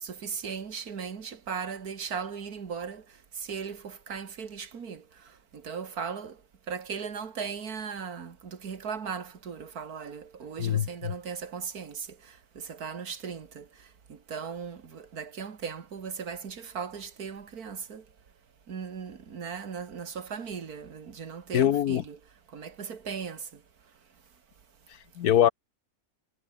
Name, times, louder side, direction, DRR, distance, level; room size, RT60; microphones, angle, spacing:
voice 1, 0.0-3.0 3.5-5.0 5.6-6.3 6.7-12.1 12.6-13.7 14.3-18.0 18.7-22.2 22.5-23.4, right 6 dB, 80° right, 2.3 m, -37 dB
voice 2, 10.6-11.1 21.5-22.0 25.2-25.5, left 10 dB, 85° left, 1.4 m, -23 dB
omnidirectional pair, 1.6 m